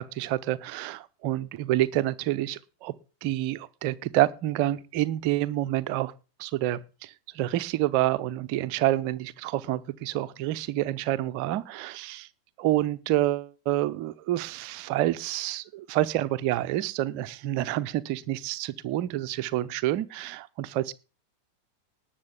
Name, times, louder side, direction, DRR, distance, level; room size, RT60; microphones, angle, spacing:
voice 1, 0.0-2.9 3.2-6.1 6.4-12.3 12.6-20.9, right 14 dB, 45° right, 0.7 m, -28 dB
19.5 x 6.8 x 3.7 m
figure-of-eight pair, 90°, 0 cm